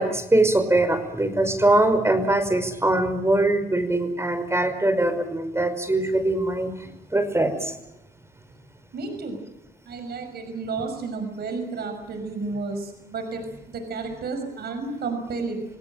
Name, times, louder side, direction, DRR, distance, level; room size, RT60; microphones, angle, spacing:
voice 1, 0.0-6.7 7.1-7.7, right 2 dB, 15° right, 9 dB, 5.2 m, -22 dB
voice 2, 8.9-9.4 9.9-13.4 13.7-15.6, right 4 dB, 70° right, 7 dB, 5.9 m, -31 dB
28.5 x 17.5 x 8.8 m, 0.87 s
supercardioid pair, 65°, 17 cm